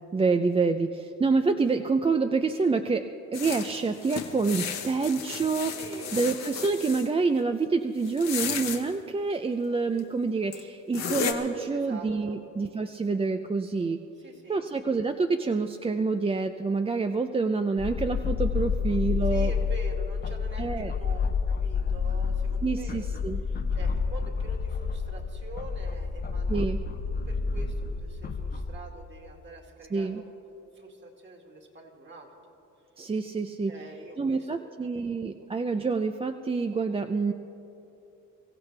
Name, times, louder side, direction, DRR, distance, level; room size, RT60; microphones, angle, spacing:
voice 1, 0.1-5.8 6.1-14.0 14.5-19.5 20.6-20.9 22.6-23.4 26.5-26.8 29.9-30.2 33.0-33.8 34.2-37.3, right 4 dB, 20° right, 7 dB, 0.5 m, -27 dB
sound 1, 3.3-7.1 8.1-8.8 10.0-10.1 10.5-10.6 10.9-11.3, left 7 dB, 60° left, 1.3 m, -34 dB
voice 2, 5.7-6.2 11.7-12.4 14.2-14.6 19.2-21.2 21.5-23.1 23.5-30.2 30.7-32.3 33.7-34.9, right 2 dB, 40° right, 1 dB, 2.3 m, -45 dB
sound 2, 17.8-28.8, left 5 dB, 35° left, 0.8 m, -29 dB
23.5 x 15.0 x 3.4 m, 2.9 s
cardioid pair, 90°, 30 cm